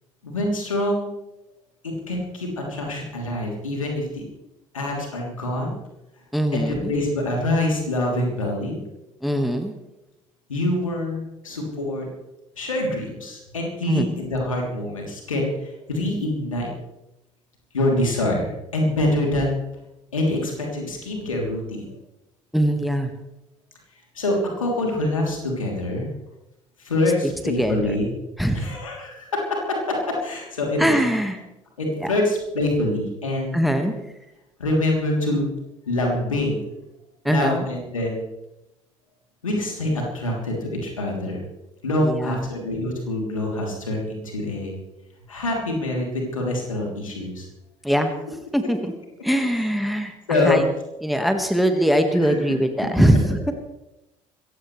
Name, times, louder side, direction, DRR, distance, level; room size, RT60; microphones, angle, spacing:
voice 1, 0.2-1.1 1.8-4.2 4.7-5.7 6.5-8.8 10.5-12.1 12.6-16.7 17.7-19.6 20.1-21.9 24.1-26.1 26.8-28.1 28.5-31.1 31.8-33.5 34.6-35.5 35.9-36.7 37.2-38.2 39.4-41.4 41.8-44.7 45.3-47.4 50.3-50.6 52.2-52.3, left 1 dB, 80° left, 0 dB, 3.2 m, -25 dB
voice 2, 6.3-6.9 9.2-9.7 13.9-14.1 22.5-23.1 27.2-28.0 28.4-28.6 30.8-31.4 32.0-32.1 33.5-34.0 37.2-37.6 42.0-42.5 47.8-48.1 48.5-48.9 49.2-50.7 51.0-53.5, equal, ahead, 7 dB, 1.7 m, -22 dB
26.0 x 15.0 x 3.3 m, 0.94 s
figure-of-eight pair, 55°, 17 cm